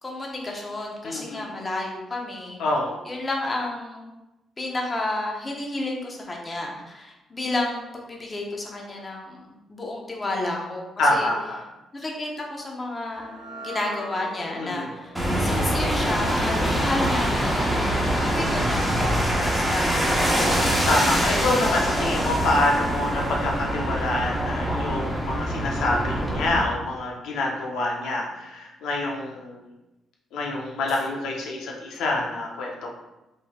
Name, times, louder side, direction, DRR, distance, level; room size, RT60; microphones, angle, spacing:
voice 1, 0.0-2.6 3.0-4.1 4.6-9.4 9.7-11.3 11.9-20.6, left 2 dB, 25° left, -1 dB, 1.0 m, -31 dB
voice 2, 1.0-1.5 2.6-3.0 11.0-11.7 14.6-14.9 16.6-16.8 18.3-18.6 20.9-29.7 30.3-32.9, left 2 dB, 85° left, -1 dB, 0.8 m, -26 dB
sound 1, 13.1-19.5, right 1 dB, 75° right, 1.5 m, -44 dB
sound 2, 15.1-26.6, equal, 5° right, 1.1 m, -24 dB
5.6 x 3.3 x 2.4 m, 0.99 s
cardioid pair, 90°, 0 cm